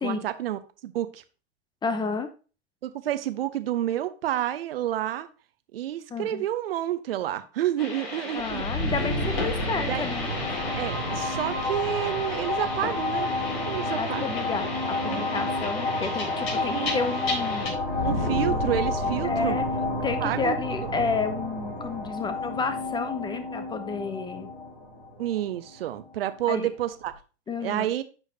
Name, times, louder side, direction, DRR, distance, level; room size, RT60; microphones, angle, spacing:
voice 1, 0.0-1.2 2.8-5.3 5.7-8.6 9.9-10.1 10.7-13.3 13.7-14.2 15.0-15.4 16.5-17.0 18.0-19.6 20.2-20.6 25.2-27.1 27.6-28.0, right 12 dB, 60° right, 11 dB, 0.9 m, -29 dB
voice 2, 1.8-2.3 6.1-6.4 8.3-10.4 13.9-17.8 19.2-19.6 20.0-24.5 26.5-26.7 27.5-27.9, left 4 dB, 15° left, 9 dB, 0.6 m, -31 dB
sound 1, 7.8-17.7, left 3 dB, 60° left, 3.8 m, -35 dB
sound 2, 8.4-26.1, left 2 dB, 40° left, 3.2 m, -30 dB
10.5 x 4.9 x 2.8 m, 0.34 s
figure-of-eight pair, 100°, 33 cm